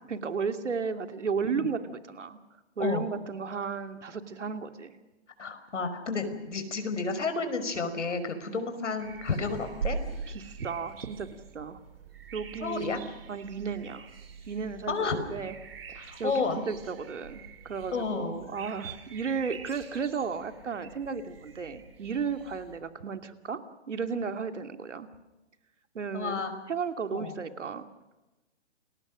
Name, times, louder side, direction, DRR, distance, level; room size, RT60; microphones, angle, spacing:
voice 1, 0.1-2.4 2.8-5.0 8.5-8.6 10.3-11.8 12.3-14.1 14.5-15.6 15.9-23.6 23.9-25.1 25.9-26.4 26.7-27.9, right 5 dB, 85° right, 8 dB, 2.7 m, -34 dB
voice 2, 5.4-10.0 12.6-13.0 14.9-15.2 16.0-16.6 17.9-18.3 26.1-26.5 27.1-27.4, left 4 dB, 85° left, 8 dB, 5.4 m, -31 dB
sound 1, 9.0-22.8, right 5 dB, 55° right, 3.8 m, -43 dB
29.5 x 21.0 x 6.3 m, 1.1 s
hypercardioid pair, 175°, 35 cm